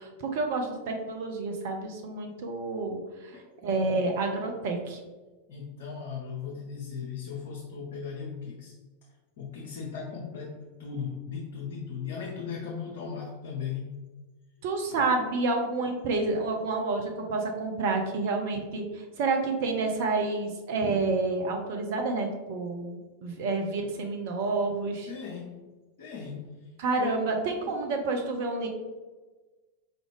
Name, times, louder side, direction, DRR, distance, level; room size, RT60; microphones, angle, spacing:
voice 1, 0.0-3.3 3.6-5.0 14.6-18.9 19.2-25.1 26.8-28.7, right 3 dB, 50° right, 3 dB, 0.5 m, -29 dB
voice 2, 5.5-8.7 9.4-14.0 14.9-15.1 24.0-24.1 25.1-25.6 26.0-26.6 27.0-27.2 27.5-27.9, left 6 dB, 55° left, -2 dB, 0.6 m, -37 dB
4.9 x 2.5 x 3.2 m, 1.2 s
figure-of-eight pair, 90°, 0 cm